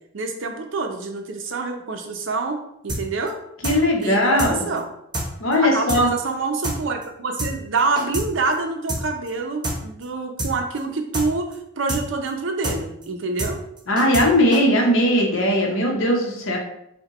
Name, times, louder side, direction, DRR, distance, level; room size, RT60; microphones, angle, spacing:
voice 1, 0.1-3.4 4.0-4.9 5.6-13.6, right 3 dB, 70° right, 4 dB, 0.6 m, -26 dB
sound 1, 2.9-3.0 3.3-3.4 3.6-3.8 4.0-4.1 4.4-4.5 4.8-4.9 5.1-5.3 5.5-5.6 5.9-6.0 6.3-6.4 6.6-6.8 7.0-7.1 7.4-7.5 7.8-8.3 8.5-8.6 8.9-9.0 9.3-9.4 9.6-9.8 10.0-10.1 10.4-10.5 10.8-10.9 11.1-11.3 11.5-11.6 11.9-12.0 12.3-12.4 12.6-12.8 13.0-13.1 13.4-13.5 13.8-14.3 14.5-14.6, right 1 dB, 20° right, 0.8 m, -26 dB
voice 2, 3.6-4.6 5.4-6.1 13.9-16.6, left 1 dB, 80° left, 0 dB, 0.9 m, -19 dB
5.0 x 2.2 x 3.0 m, 0.77 s
head